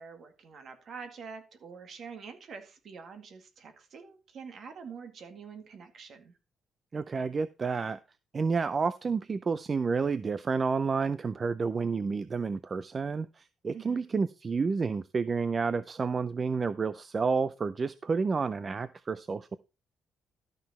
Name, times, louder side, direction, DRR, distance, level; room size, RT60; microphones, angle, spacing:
voice 1, 0.0-6.3 13.7-14.0, right 5 dB, 55° right, 7 dB, 2.0 m, -46 dB
voice 2, 6.9-8.0 8.3-19.6, right 5 dB, 30° right, 15 dB, 0.4 m, -30 dB
13.0 x 6.0 x 4.2 m, 0.30 s
cardioid pair, 135°, 0 cm